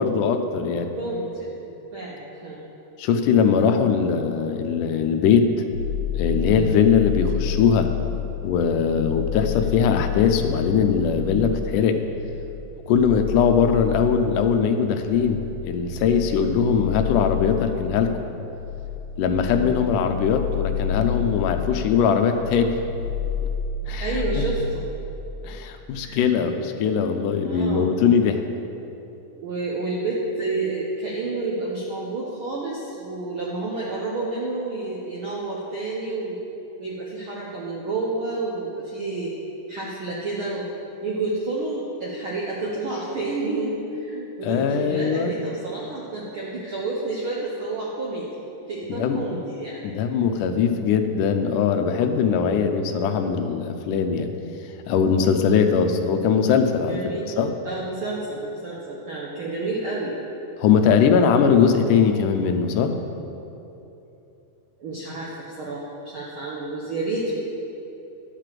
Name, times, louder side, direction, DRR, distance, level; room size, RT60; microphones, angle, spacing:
voice 1, 0.0-0.9 3.0-5.5 6.1-7.9 8.4-12.0 12.9-18.1 19.2-22.8 23.9-24.1 24.3-24.5 25.4-28.4 44.4-45.3 48.9-49.2 49.8-54.3 54.9-57.0 57.4-57.5 60.6-62.9, left 6 dB, 80° left, 6 dB, 2.1 m, -21 dB
voice 2, 1.0-1.6 1.9-2.6 24.0-24.8 26.0-26.2 27.4-27.9 29.3-36.4 36.8-39.3 39.7-40.7 41.0-48.4 48.7-49.9 56.9-57.3 57.6-60.2 64.8-65.9 66.1-67.3, right 2 dB, 70° right, -4 dB, 1.2 m, -29 dB
sound 1, 5.7-25.2, left 7 dB, 55° right, 1.8 m, -30 dB
11.5 x 5.0 x 7.6 m, 2.9 s
omnidirectional pair, 3.7 m